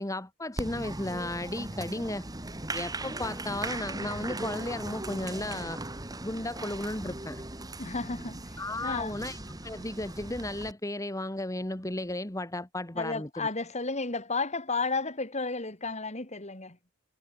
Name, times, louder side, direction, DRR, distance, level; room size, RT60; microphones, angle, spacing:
voice 1, 0.0-2.3 2.7-5.8 6.2-7.4 8.6-13.5, left 1 dB, 15° left, 1.6 m, -34 dB
Applause, 0.6-10.7, right 2 dB, 20° right, 2.2 m, -38 dB
voice 2, 7.8-9.2 12.9-16.8, left 3 dB, 35° left, 3.9 m, -33 dB
head